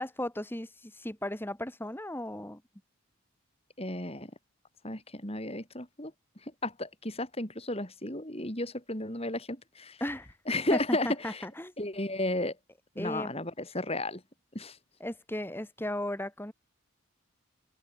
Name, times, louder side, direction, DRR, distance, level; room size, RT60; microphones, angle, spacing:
voice 1, 0.0-2.6 10.0-10.4 10.7-11.7 13.0-13.3 15.0-16.5, left 1 dB, 10° left, 1.8 m, -35 dB
voice 2, 3.8-4.3 4.8-6.1 6.6-10.0 10.5-11.4 11.8-12.5 13.0-14.2 14.5-14.8, left 1 dB, 30° left, 6.1 m, -33 dB
open air
head